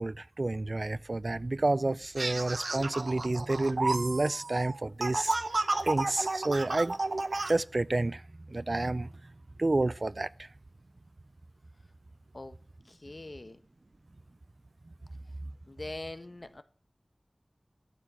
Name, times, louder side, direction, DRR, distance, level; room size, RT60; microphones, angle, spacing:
voice 1, 0.0-5.3 5.8-6.9 7.5-8.2 8.5-9.1 9.6-10.3, right 2 dB, 60° right, 0.4 m, -29 dB
sound 1, 2.2-7.5, right 2 dB, 90° right, 0.8 m, -32 dB
voice 2, 12.8-13.6 15.7-16.6, left 2 dB, 60° left, 1.2 m, -42 dB
12.5 x 4.7 x 8.7 m
wide cardioid pair, 45°, 0 cm